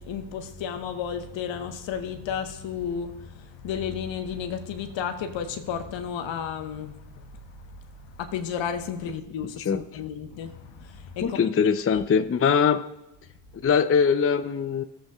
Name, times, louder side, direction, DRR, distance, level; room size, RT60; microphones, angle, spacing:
voice 1, 0.0-11.4 11.9-12.0, left 7 dB, 65° left, 1.3 m, -33 dB
voice 2, 11.2-12.9 13.6-14.8, left 6 dB, 30° left, 0.6 m, -22 dB
18.0 x 7.8 x 2.4 m
hypercardioid pair, 40°, 48 cm